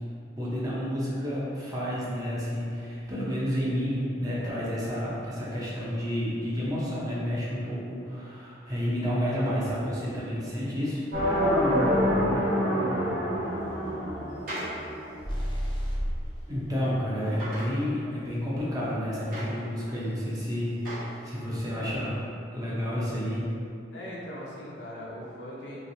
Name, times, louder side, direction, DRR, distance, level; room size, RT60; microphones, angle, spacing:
voice 1, 0.4-11.0 16.5-20.8 21.2-22.2 22.5-23.5, equal, 20° right, -8 dB, 0.7 m, -30 dB
sound 1, 11.1-15.1, equal, 80° right, 1.1 m, -26 dB
sound 2, 12.3-12.5 13.6-14.8 15.3-15.4 16.3-16.7 17.2-17.7 18.3-18.4 19.1-20.0 20.4-21.1 21.7-21.8, right 1 dB, 50° right, 1.0 m, -39 dB
sound 3, 15.2-16.4, equal, 25° left, 0.5 m, -30 dB
voice 2, 23.9-25.8, equal, 70° left, -5 dB, 0.7 m, -40 dB
3.1 x 3.1 x 2.7 m, 2.6 s
head